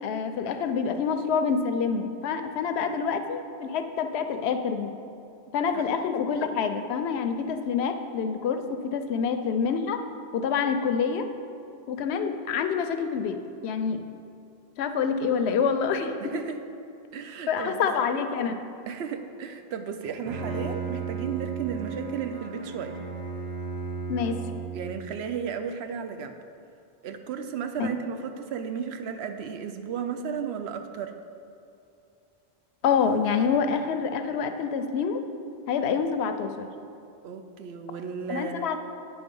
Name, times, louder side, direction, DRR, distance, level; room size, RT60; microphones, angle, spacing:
voice 1, 0.0-4.9 5.5-10.0 10.3-11.2 11.9-13.4 13.6-14.0 14.8-16.2 17.5-18.6 24.1-24.4 27.8-27.9 32.8-35.2 35.7-36.7 38.3-38.8, left 6 dB, 85° left, 8 dB, 0.8 m, -27 dB
voice 2, 16.2-16.6 17.1-17.9 18.9-23.0 24.7-26.4 27.0-31.1 37.2-38.7, right 7 dB, 80° right, 7 dB, 0.8 m, -34 dB
Bowed string instrument, 20.0-25.1, right 5 dB, 45° right, 0.8 m, -34 dB
9.6 x 3.6 x 5.3 m, 2.6 s
omnidirectional pair, 1.1 m